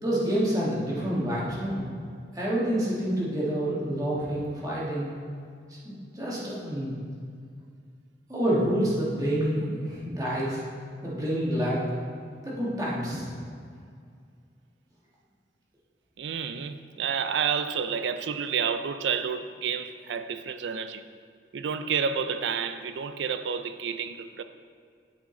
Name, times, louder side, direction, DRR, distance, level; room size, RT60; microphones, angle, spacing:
voice 1, 0.0-1.9 2.3-5.1 5.7-6.9 8.3-10.6 11.0-11.8 12.4-13.3, equal, 20° right, 1.5 m, -28 dB
voice 2, 16.2-21.0 21.5-24.4, right 6 dB, 70° right, 0.4 m, -30 dB
8.6 x 5.1 x 3.8 m
head